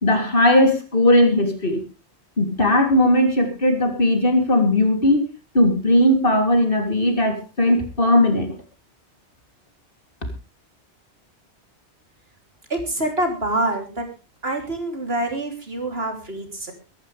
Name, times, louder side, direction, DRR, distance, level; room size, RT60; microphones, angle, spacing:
voice 1, 0.0-1.8 2.4-5.2 5.5-8.5, left 1 dB, 55° left, 5 dB, 3.4 m, -18 dB
voice 2, 12.7-14.1 14.4-16.7, right 1 dB, 60° right, 4 dB, 3.6 m, -26 dB
23.5 x 11.5 x 3.4 m, 0.31 s
omnidirectional pair, 1.1 m